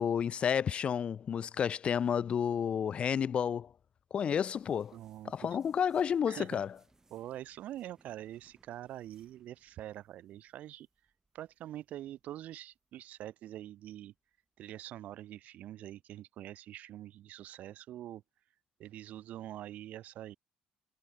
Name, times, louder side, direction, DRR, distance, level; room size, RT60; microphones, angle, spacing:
voice 1, 0.0-3.7 4.1-5.0 5.3-6.7, left 8 dB, 45° left, 0.7 m, -31 dB
sound 1, 4.6-14.7, right 3 dB, 20° right, 6.4 m, -71 dB
voice 2, 4.9-5.5 6.3-6.6 7.1-10.9 11.3-14.1 14.6-18.2 18.8-20.4, right 13 dB, 65° right, 0.9 m, -45 dB
cardioid pair, 105°, 3 cm